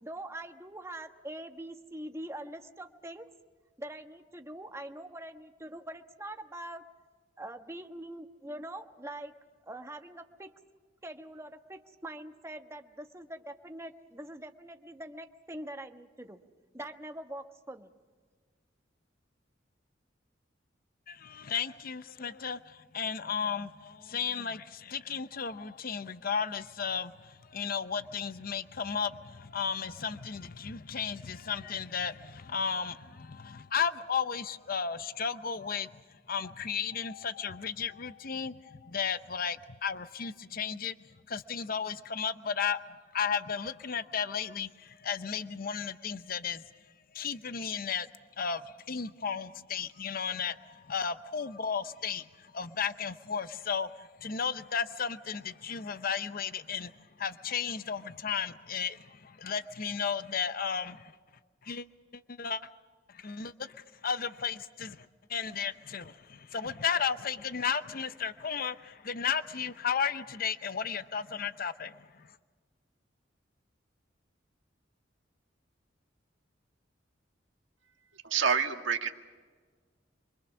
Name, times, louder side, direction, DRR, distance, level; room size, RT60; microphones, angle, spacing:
voice 1, 0.0-3.3 3.8-6.8 7.4-9.3 9.6-10.5 11.0-16.4 16.7-17.9, right 1 dB, 15° right, 5 dB, 1.3 m, -43 dB
voice 2, 21.1-46.8 47.1-48.1 48.4-61.1 61.6-61.9 62.1-62.7 63.1-72.4, left 6 dB, 50° left, 12 dB, 0.7 m, -34 dB
voice 3, 78.2-79.1, right 6 dB, 90° right, 4 dB, 1.8 m, -27 dB
28.0 x 24.0 x 6.2 m, 1.5 s
head